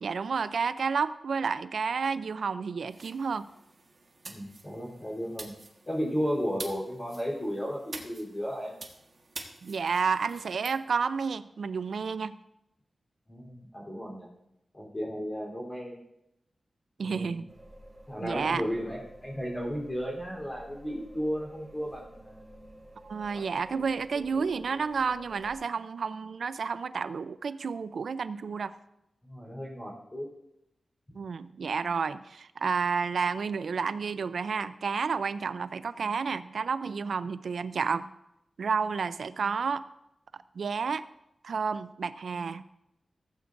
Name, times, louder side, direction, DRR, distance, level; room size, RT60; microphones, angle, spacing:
voice 1, 0.0-3.5 9.6-12.4 17.0-17.5 18.2-18.6 23.0-28.7 31.1-38.1 38.6-39.8 40.6-41.0 41.4-42.6, right 5 dB, 80° right, 14 dB, 0.4 m, -30 dB
sound 1, 2.9-10.8, right 3 dB, 45° right, 1.4 m, -47 dB
voice 2, 4.2-5.5 5.9-8.7 13.3-14.3 14.7-15.9 17.0-17.4 18.1-22.7 23.3-23.4 24.7-24.8 29.2-30.2, equal, 25° left, -4 dB, 3.4 m, -34 dB
sound 2, 17.5-25.6, right 1 dB, 25° right, 2.9 m, -51 dB
15.5 x 8.3 x 2.6 m, 0.85 s
wide cardioid pair, 135°, 0 cm